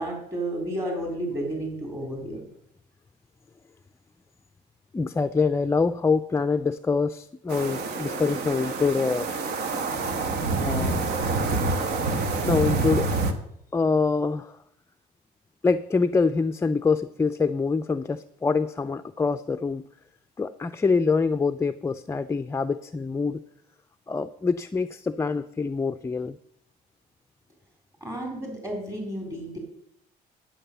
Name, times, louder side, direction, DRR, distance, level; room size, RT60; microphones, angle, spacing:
voice 1, 0.0-2.4 28.0-29.6, right 1 dB, 20° right, 0 dB, 4.0 m, -32 dB
voice 2, 4.9-9.3 10.6-11.1 12.4-13.1 13.7-14.6 15.6-19.9 20.4-23.4 24.1-26.4, left 4 dB, 15° left, 10 dB, 0.4 m, -25 dB
sound 1, 7.5-13.3, right 3 dB, 75° right, 1.4 m, -27 dB
11.0 x 7.5 x 6.8 m, 0.72 s
cardioid pair, 110°, 17 cm